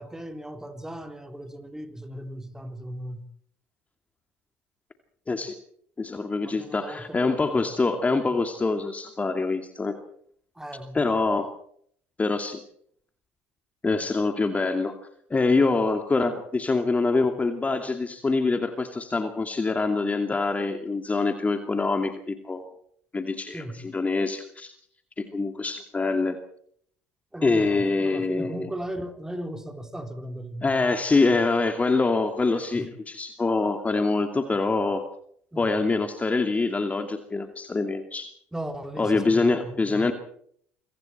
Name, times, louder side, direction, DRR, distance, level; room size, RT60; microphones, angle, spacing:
voice 1, 0.0-3.3 6.4-7.8 8.2-8.3 10.6-11.1 23.5-23.8 27.3-30.7 31.3-31.4 32.7-32.9 35.5-35.8 38.5-40.1, right 1 dB, 5° right, 3.7 m, -37 dB
voice 2, 5.3-5.6 6.0-10.0 10.9-11.5 12.2-12.6 13.8-15.0 15.3-22.6 23.1-23.6 23.9-24.7 25.2-26.4 27.4-28.7 30.6-35.0 35.6-38.3 39.0-40.1, left 3 dB, 20° left, 2.6 m, -25 dB
27.5 x 24.0 x 4.5 m
figure-of-eight pair, 60°, 7 cm